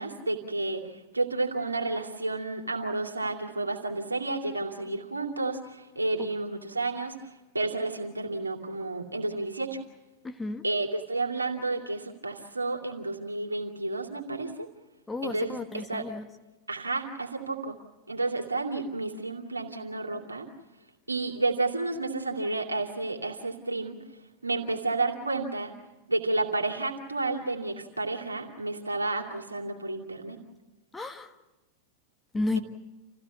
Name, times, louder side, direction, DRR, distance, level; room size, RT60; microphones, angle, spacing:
voice 1, 0.0-9.8 10.6-14.7 15.2-16.0 16.7-17.7 18.1-20.5 21.1-24.0 24.4-25.7 26.1-30.4, right 2 dB, 80° right, 2 dB, 2.7 m, -31 dB
voice 2, 10.2-10.6 15.1-16.2 30.9-31.3 32.3-32.6, left 2 dB, 10° left, 6 dB, 1.5 m, -32 dB
27.5 x 16.0 x 8.3 m, 1.1 s
figure-of-eight pair, 90°, 0 cm